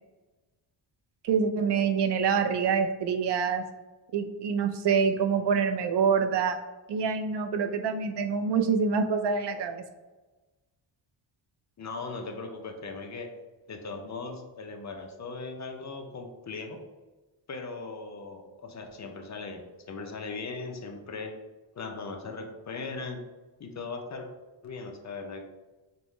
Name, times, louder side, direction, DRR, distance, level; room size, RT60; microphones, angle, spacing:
voice 1, 1.2-3.6 4.1-6.6 6.9-9.8, right 6 dB, 65° right, 6 dB, 0.5 m, -26 dB
voice 2, 11.8-13.3 13.7-16.8 17.5-21.3 21.8-23.2 23.6-24.3 24.6-25.4, left 3 dB, 40° left, 4 dB, 0.5 m, -38 dB
5.3 x 2.1 x 3.0 m, 1.2 s
wide cardioid pair, 115°, 46 cm